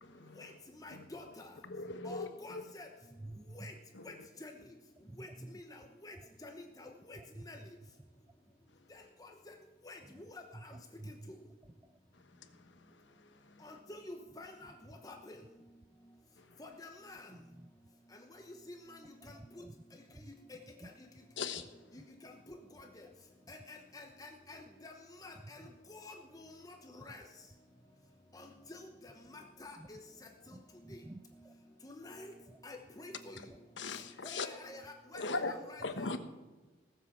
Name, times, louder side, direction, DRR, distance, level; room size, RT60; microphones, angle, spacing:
voice 1, 0.0-0.4 0.9-1.0 1.7-2.3 2.5-2.6 3.9-4.0 21.4-21.6 33.8-34.5 35.1-35.5 35.8-36.2, left 3 dB, 80° left, 9 dB, 1.2 m, -38 dB
voice 2, 0.8-1.5 2.0-2.9 3.5-3.7 4.0-4.1 4.4-4.5 5.2-5.3 5.5-5.8 6.0-6.1 6.4-6.5 6.8-7.2 7.5-7.6 9.9-10.0 10.6-10.7 13.6-14.7 15.0-15.3 16.6-17.2 18.9-19.0 20.5-20.6 23.5-24.9 25.2-25.6 25.9-26.8 27.0-27.2 28.3-28.8 29.0-29.8 30.9-31.0 31.8-32.3 32.6-33.4 34.2-36.1, left 2 dB, 20° left, 3 dB, 1.0 m, -49 dB
voice 3, 3.2-3.7 5.1-5.5 7.2-7.5 11.0-11.1 17.3-17.7 19.2-19.7 20.1-20.2 20.8-20.9 22.0-22.1 29.8-29.9 30.5-30.6 30.9-31.2 31.4-31.5 32.5-32.6 34.0-34.1, right 1 dB, 15° right, 10 dB, 0.3 m, -49 dB
17.5 x 7.4 x 7.2 m, 1.2 s
head